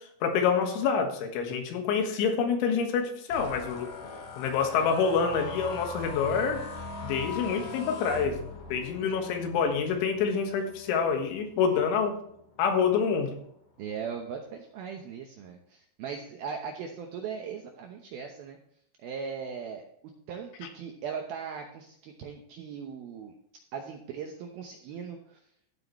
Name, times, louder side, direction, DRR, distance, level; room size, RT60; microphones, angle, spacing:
voice 1, 0.2-3.9 4.4-6.6 7.0-8.4 8.7-12.2 12.6-13.4, left 6 dB, 80° left, 4 dB, 3.8 m, -27 dB
sound 1, 3.3-12.7 13.2-13.5 13.8-14.3, left 4 dB, 45° left, 3.1 m, -41 dB
voice 2, 13.8-18.6 19.0-19.8 20.3-23.3 23.7-25.4, right 6 dB, 75° right, 3 dB, 2.2 m, -39 dB
15.0 x 8.0 x 3.1 m, 0.66 s
omnidirectional pair, 5.5 m